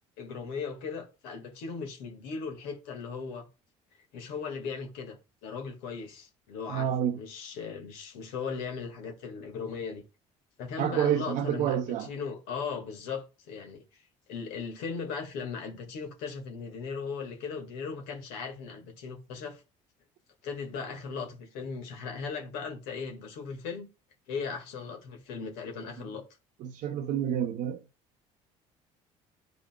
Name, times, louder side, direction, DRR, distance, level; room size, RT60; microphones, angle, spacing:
voice 1, 0.2-3.5 4.1-5.2 5.4-10.0 10.6-14.0 14.3-19.6 20.4-23.9 24.3-26.2, left 5 dB, 80° left, 1.9 m, -38 dB
voice 2, 6.7-7.2 10.8-12.1 26.6-27.8, right 10 dB, 65° right, 0.8 m, -28 dB
11.0 x 5.1 x 2.3 m
supercardioid pair, 75°, 15 cm